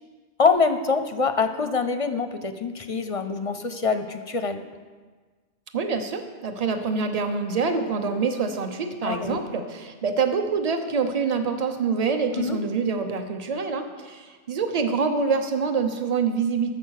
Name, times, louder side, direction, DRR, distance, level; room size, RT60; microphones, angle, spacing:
voice 1, 0.4-4.6 9.0-9.4 12.4-12.6, left 4 dB, 40° left, 8 dB, 0.6 m, -24 dB
voice 2, 5.7-16.7, right 5 dB, 35° right, 6 dB, 1.0 m, -26 dB
14.0 x 7.0 x 6.5 m, 1.4 s
omnidirectional pair, 1.1 m